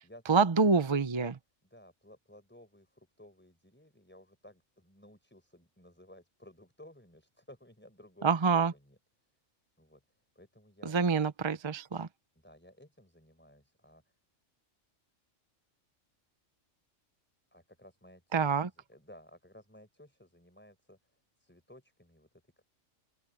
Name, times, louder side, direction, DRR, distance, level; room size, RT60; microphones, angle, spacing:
voice 1, 0.3-1.3 8.2-8.7 10.8-12.1 18.3-18.7, right 5 dB, 30° right, 0.6 m, -26 dB
voice 2, 1.7-9.0 9.8-10.0 10.4-11.0 12.4-14.0 17.5-21.0 21.4-22.3 22.6-22.7, left 1 dB, 10° left, 5.1 m, -56 dB
open air
omnidirectional pair, 1.3 m